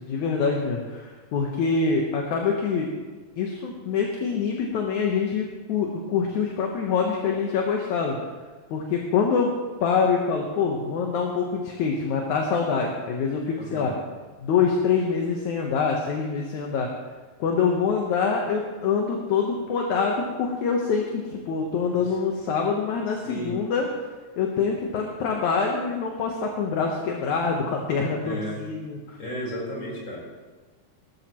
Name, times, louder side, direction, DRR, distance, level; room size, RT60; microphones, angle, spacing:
voice 1, 0.0-2.9 3.4-8.2 8.7-9.5 9.8-13.9 14.4-16.9 17.4-23.9 24.4-29.2, left 5 dB, 65° left, 0 dB, 2.2 m, -25 dB
voice 2, 13.6-13.9 23.2-23.6 28.2-28.6 29.2-30.2, equal, 30° left, -4 dB, 5.0 m, -33 dB
20.5 x 13.0 x 3.1 m, 1.3 s
omnidirectional pair, 4.3 m